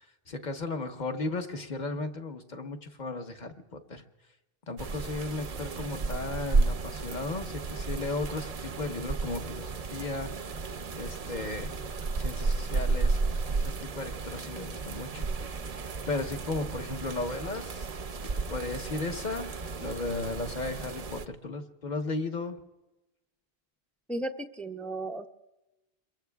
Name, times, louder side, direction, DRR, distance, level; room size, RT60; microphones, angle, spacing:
voice 1, 0.3-4.0 4.7-10.3 11.0-11.8 12.2-13.2 13.4-15.3 16.1-17.9 18.5-22.5, left 3 dB, 45° left, 6 dB, 1.2 m, -35 dB
sound 1, 4.8-21.3, right 3 dB, 45° right, 0.6 m, -33 dB
voice 2, 24.1-25.3, right 2 dB, ahead, 5 dB, 0.4 m, -35 dB
28.0 x 22.5 x 2.3 m, 1.0 s
omnidirectional pair, 1.1 m